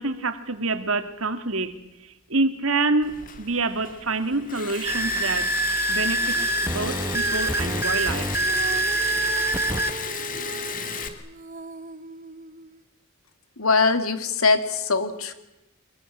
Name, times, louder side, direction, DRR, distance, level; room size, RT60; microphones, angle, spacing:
voice 1, 0.0-1.7 2.0-5.5 5.9-8.4, right 3 dB, 75° right, 2.3 m, -27 dB
Liquid, 3.0-11.1, left 6 dB, 40° left, 2.4 m, -34 dB
sound 1, 4.8-9.9, right 2 dB, 10° right, 1.0 m, -25 dB
Female singing, 6.3-12.8, right 3 dB, 35° right, 0.8 m, -39 dB
voice 2, 13.6-15.3, left 4 dB, 85° left, 2.7 m, -22 dB
25.5 x 21.5 x 8.8 m
head